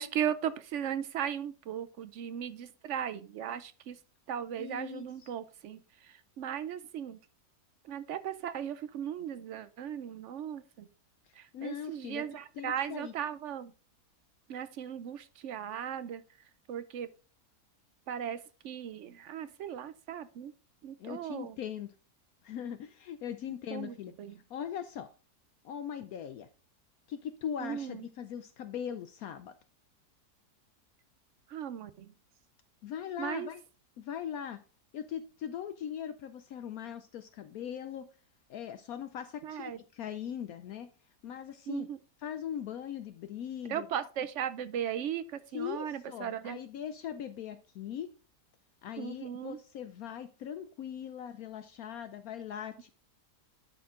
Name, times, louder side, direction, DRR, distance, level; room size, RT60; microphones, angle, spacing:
voice 1, 0.0-4.0 4.3-7.2 7.9-10.9 11.4-13.7 14.5-16.2 16.7-17.1 18.1-20.5 20.8-21.6 23.7-24.3 27.6-28.1 31.5-32.1 33.2-33.5 39.4-39.8 41.7-42.0 43.7-46.6 49.0-49.6, right 9 dB, 70° right, 0.7 m, -37 dB
voice 2, 4.6-5.3 11.5-13.1 21.0-21.9 22.4-24.1 24.5-25.1 25.6-26.5 27.1-29.5 32.8-33.6 34.0-34.6 34.9-38.1 38.5-40.9 41.2-41.9 42.2-43.9 45.5-48.1 48.8-52.9, left 9 dB, 70° left, 1.0 m, -40 dB
11.0 x 4.5 x 3.6 m
omnidirectional pair, 1.7 m